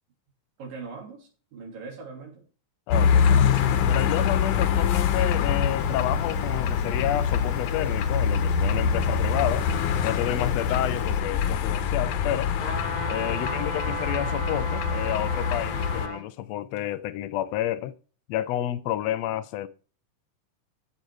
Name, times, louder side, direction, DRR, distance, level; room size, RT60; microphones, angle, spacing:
voice 1, 0.6-2.4 13.2-13.8, right 4 dB, 80° right, 4.8 m, -41 dB
voice 2, 2.9-3.4 3.9-9.7 10.0-12.5 13.1-17.9 18.3-19.7, left 13 dB, 85° left, 1.5 m, -30 dB
sound 1, 2.9-16.1, left 7 dB, 70° left, 2.3 m, -24 dB
Fire, 3.2-11.2, equal, 35° right, 2.4 m, -43 dB
sound 2, 12.6-16.2 16.8-16.9, equal, 35° left, 0.6 m, -34 dB
15.0 x 5.7 x 4.8 m
omnidirectional pair, 3.8 m